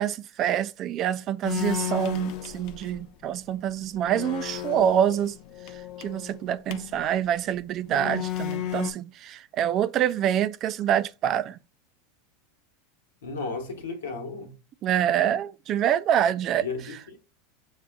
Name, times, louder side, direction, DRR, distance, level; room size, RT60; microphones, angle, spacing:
voice 1, 0.0-5.3 6.0-11.6 14.8-16.6, right 10 dB, 45° right, 0.3 m, -26 dB
sound 1, 1.4-3.1 3.5-3.6 3.9-7.0 7.8-8.9, left 12 dB, 60° left, 0.5 m, -34 dB
voice 2, 13.2-14.6 16.6-17.2, left 4 dB, 85° left, 1.2 m, -34 dB
7.0 x 2.4 x 2.3 m
hypercardioid pair, 100°, 0 cm